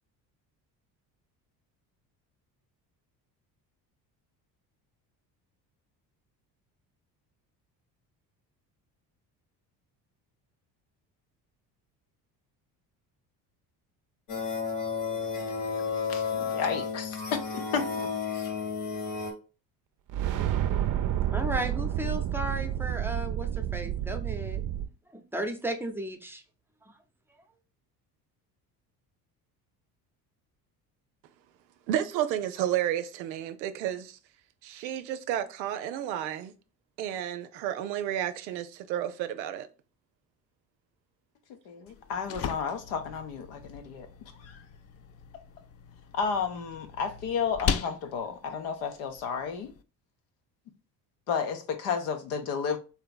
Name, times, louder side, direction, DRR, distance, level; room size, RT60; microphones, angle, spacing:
sound 1, 14.3-19.3, left 5 dB, 55° left, 1.3 m, -32 dB
voice 1, 16.1-18.1 41.7-44.1 44.4-44.6 46.1-49.7 51.3-52.8, left 6 dB, 70° left, 0.9 m, -32 dB
sound 2, 20.1-24.8, right 11 dB, 40° right, 0.5 m, -29 dB
voice 2, 21.3-24.6 25.1-26.4, right 1 dB, 5° right, 0.7 m, -34 dB
voice 3, 31.9-34.2 34.6-36.5 37.0-39.7, right 11 dB, 85° right, 0.6 m, -31 dB
sound 3, 41.9-49.8, left 7 dB, 30° left, 0.4 m, -38 dB
3.2 x 2.9 x 3.8 m
hypercardioid pair, 60°, 50 cm